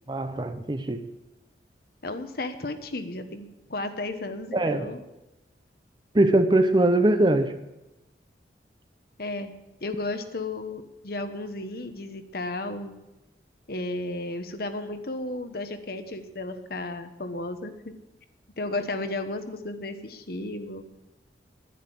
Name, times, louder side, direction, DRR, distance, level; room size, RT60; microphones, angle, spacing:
voice 1, 0.1-1.1 4.5-4.9 6.1-7.5, right 1 dB, 25° right, 9 dB, 0.8 m, -21 dB
voice 2, 2.0-5.0 9.2-9.5 9.8-12.9 13.7-18.0 18.6-20.8, left 2 dB, 60° left, 8 dB, 1.1 m, -33 dB
11.0 x 10.5 x 7.7 m, 0.98 s
head